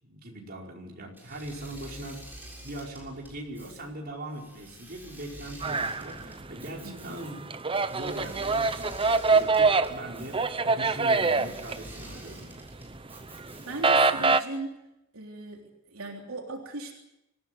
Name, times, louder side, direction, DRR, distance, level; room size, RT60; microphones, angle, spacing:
voice 1, 0.0-2.2 2.6-7.4 7.9-12.5, right 1 dB, 45° right, -1 dB, 5.0 m, -41 dB
Engine / Mechanisms, 1.1-14.0, right 1 dB, 10° right, 7.0 m, -48 dB
sound 1, 5.6-6.7 7.0-12.5 12.8-14.4, right 4 dB, 25° right, 0.8 m, -24 dB
voice 2, 6.8-7.2 13.7-14.8 15.1-16.9, right 2 dB, 80° right, 1 dB, 3.5 m, -38 dB
26.0 x 16.0 x 9.3 m, 0.90 s
head